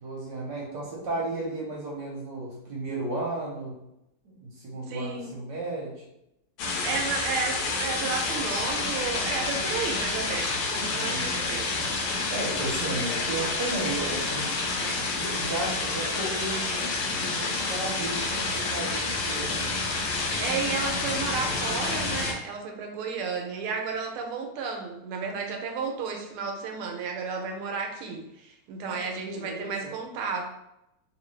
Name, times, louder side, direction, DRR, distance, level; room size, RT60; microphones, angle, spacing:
voice 1, 0.0-3.8 4.2-6.0 10.9-11.4 12.3-14.5 15.1-19.7 28.8-29.9, right 2 dB, 60° right, -3 dB, 1.3 m, -34 dB
voice 2, 4.9-5.4 6.8-11.9 20.4-30.5, right 5 dB, 80° right, 2 dB, 1.5 m, -33 dB
sound 1, 6.6-22.3, left 3 dB, 75° left, 1.3 m, -29 dB
3.1 x 3.0 x 3.1 m, 0.86 s
omnidirectional pair, 2.4 m